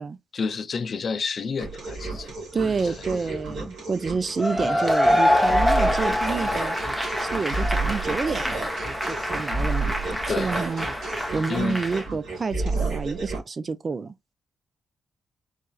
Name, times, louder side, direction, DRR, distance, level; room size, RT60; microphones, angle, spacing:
voice 1, 0.3-2.4 2.8-2.9 3.2-3.3 10.3-10.5 11.5-11.8, left 5 dB, 50° left, 0.3 m, -29 dB
sound 1, 1.6-13.4, right 3 dB, 80° right, 2.0 m, -31 dB
voice 2, 2.5-6.8 7.2-8.7 9.0-9.9 10.4-10.9 11.3-14.1, right 4 dB, 40° right, 0.4 m, -29 dB
Cheering / Applause / Crowd, 4.4-12.1, left 1 dB, 5° right, 0.8 m, -25 dB
4.0 x 2.3 x 2.3 m
cardioid pair, 80°, 0 cm